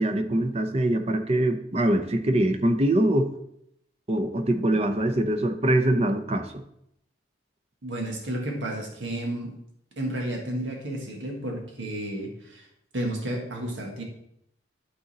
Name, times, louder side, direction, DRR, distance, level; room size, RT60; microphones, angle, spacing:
voice 1, 0.0-3.3 4.1-6.6, right 1 dB, 35° right, 8 dB, 0.7 m, -23 dB
voice 2, 7.8-9.5 10.0-12.7 12.9-14.0, right 1 dB, 85° right, 1 dB, 1.6 m, -32 dB
11.5 x 4.0 x 4.1 m, 0.75 s
head